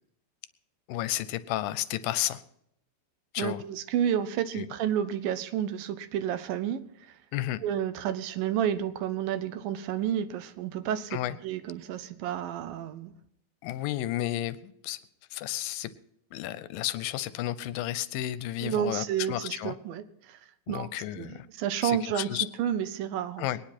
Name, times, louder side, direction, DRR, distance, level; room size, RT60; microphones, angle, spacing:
voice 1, 0.9-2.4 3.3-3.6 4.6-4.7 7.3-7.6 11.1-11.4 13.6-15.0 15.3-15.9 16.3-19.8 20.7-21.5 21.8-22.5 23.4-23.6, left 14 dB, 80° left, 14 dB, 2.3 m, -32 dB
voice 2, 3.4-7.1 7.6-11.2 11.4-13.1 18.6-20.4 20.7-20.9 21.1-23.5, right 10 dB, 80° right, 12 dB, 2.5 m, -31 dB
22.5 x 9.8 x 4.3 m, 0.76 s
omnidirectional pair, 4.0 m